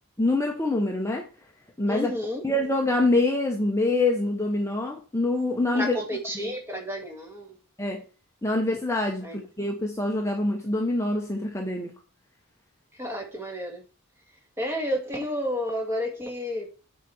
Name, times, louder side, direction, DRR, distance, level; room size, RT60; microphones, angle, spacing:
voice 1, 0.2-1.3 1.8-2.1 2.4-6.0 7.8-8.0 8.4-11.9, left 2 dB, 15° left, 1.0 m, -25 dB
voice 2, 1.9-2.5 5.7-7.5 9.2-9.4 13.0-13.8 14.6-16.7, equal, 10° right, 2.1 m, -31 dB
9.0 x 4.8 x 6.3 m
head